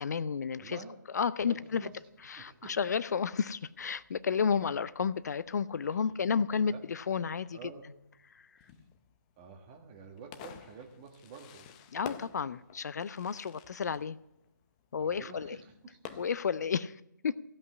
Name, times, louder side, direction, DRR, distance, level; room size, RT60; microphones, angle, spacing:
voice 1, 0.0-0.8 1.1-1.9 2.2-7.6 8.3-8.4 11.9-14.2 14.9-15.6 16.2-17.4, left 6 dB, 55° left, 17 dB, 0.4 m, -32 dB
voice 2, 0.5-1.0 1.4-2.0 2.4-2.8 5.9-6.1 6.5-6.8 7.5-7.9 8.5-8.7 9.4-11.7 15.0-16.4, right 5 dB, 25° right, 4 dB, 1.6 m, -49 dB
Fireworks, 1.7-16.7, left 9 dB, 20° left, 0.6 m, -53 dB
15.0 x 5.5 x 9.6 m, 0.88 s
figure-of-eight pair, 150°, 11 cm